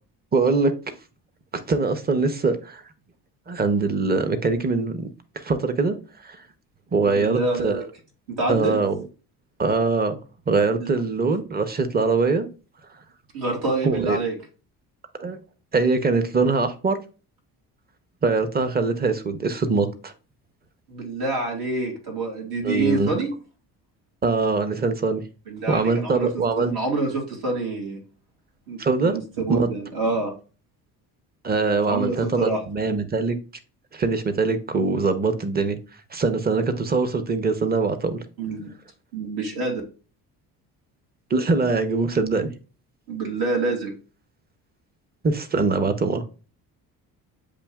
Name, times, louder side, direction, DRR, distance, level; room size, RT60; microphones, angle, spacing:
voice 1, 0.3-0.7 1.7-2.8 3.5-5.1 5.4-6.0 6.2-6.4 6.9-7.8 8.5-9.0 9.6-10.2 10.5-12.5 13.8-14.2 15.2-15.4 15.7-17.0 18.2-20.1 22.6-23.1 24.2-25.2 25.7-26.7 28.8-29.2 29.5-29.7 31.4-33.4 33.9-35.8 36.1-38.2 41.3-42.5 45.2-46.2, right 4 dB, 25° right, 0.7 m, -22 dB
voice 2, 7.0-7.8 8.3-8.8 10.8-11.0 13.3-14.3 20.9-23.3 25.5-28.0 28.7-30.3 31.9-32.6 38.4-38.7 39.1-39.8 43.1-43.9, right 3 dB, 70° right, 2.5 m, -27 dB
8.3 x 2.8 x 2.3 m
cardioid pair, 95°, 38 cm